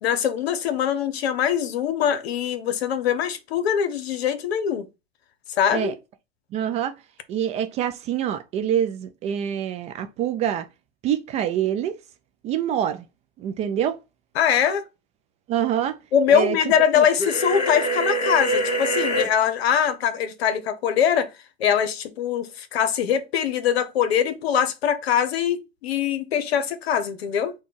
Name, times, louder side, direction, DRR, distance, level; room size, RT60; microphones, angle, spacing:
voice 1, 0.0-4.9 5.6-6.0 14.3-14.8 16.1-21.3 21.6-27.5, left 8 dB, 75° left, 0.9 m, -22 dB
voice 2, 6.5-6.9 7.3-10.7 11.0-11.9 12.4-13.0 13.4-14.0 15.5-16.0 16.3-16.6 17.0-17.1, right 10 dB, 20° right, 0.3 m, -25 dB
sound 1, 17.2-19.3, equal, 20° left, 1.9 m, -24 dB
4.3 x 2.3 x 4.4 m
hypercardioid pair, 115°, 32 cm